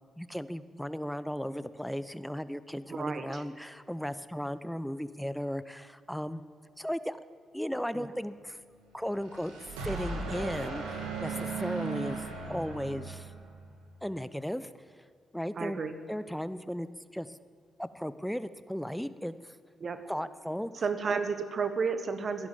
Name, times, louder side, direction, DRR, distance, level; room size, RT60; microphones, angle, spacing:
voice 1, 0.2-6.4 6.8-7.2 7.5-8.6 8.9-12.2 12.5-13.3 14.0-14.7 15.3-16.9 17.1-17.3 17.8-19.5 20.1-20.7, equal, 5° left, 14 dB, 0.8 m, -36 dB
voice 2, 2.9-3.4 8.0-8.1 15.6-15.9 19.8-20.0 20.8-22.5, right 5 dB, 50° right, 9 dB, 1.4 m, -32 dB
sound 1, 9.1-13.7, right 4 dB, 90° right, 2.3 m, -37 dB
15.5 x 11.0 x 7.4 m, 2.2 s
hypercardioid pair, 45°, 0 cm